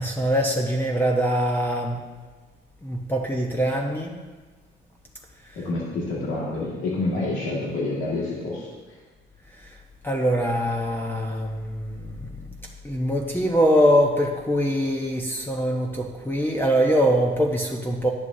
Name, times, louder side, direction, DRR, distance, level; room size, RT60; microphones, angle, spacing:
voice 1, 0.0-2.1 2.8-4.2 5.4-5.6 9.5-9.8 10.0-12.4 12.8-18.1, equal, 10° left, 0 dB, 1.1 m, -23 dB
voice 2, 5.6-9.0, left 2 dB, 90° left, -6 dB, 2.2 m, -28 dB
12.5 x 10.5 x 2.8 m, 1.3 s
cardioid pair, 90°, 20 cm